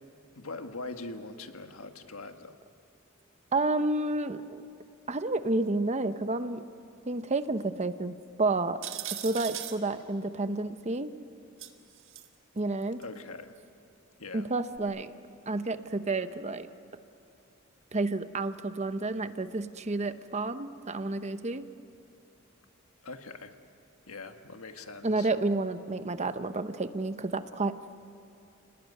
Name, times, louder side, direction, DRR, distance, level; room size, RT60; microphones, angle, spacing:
voice 1, 0.3-2.6 13.0-13.5 14.2-14.5 23.0-23.6 24.1-25.3, left 3 dB, 85° left, 6 dB, 1.6 m, -42 dB
voice 2, 3.5-4.6 5.1-6.6 7.1-8.8 9.2-11.1 12.6-13.0 14.3-15.1 15.5-16.7 17.9-21.7 25.0-27.8, right 2 dB, 30° right, 11 dB, 0.8 m, -30 dB
sound 1, 8.8-9.8 11.6-12.3 13.0-13.1 14.8-14.9, right 11 dB, 65° right, 1.8 m, -38 dB
30.0 x 19.0 x 9.6 m, 2.5 s
head